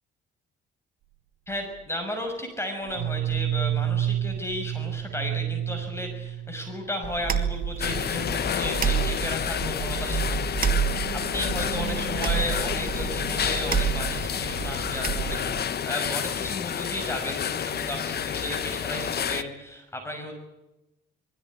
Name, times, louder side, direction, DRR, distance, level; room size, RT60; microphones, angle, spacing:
voice 1, 1.5-20.3, left 1 dB, 15° left, 4 dB, 6.0 m, -34 dB
sound 1, 1.5-1.9 2.8-7.3 7.7-7.8 8.1-8.4 8.7-9.0 9.7-9.8 10.7-13.9, right 12 dB, 80° right, 1.1 m, -32 dB
sound 2, 7.0-15.6, right 7 dB, 45° right, 2.4 m, -29 dB
sound 3, 7.8-19.4, left 8 dB, 55° left, 1.2 m, -30 dB
23.0 x 15.5 x 9.9 m, 0.97 s
cardioid pair, 90°, 20 cm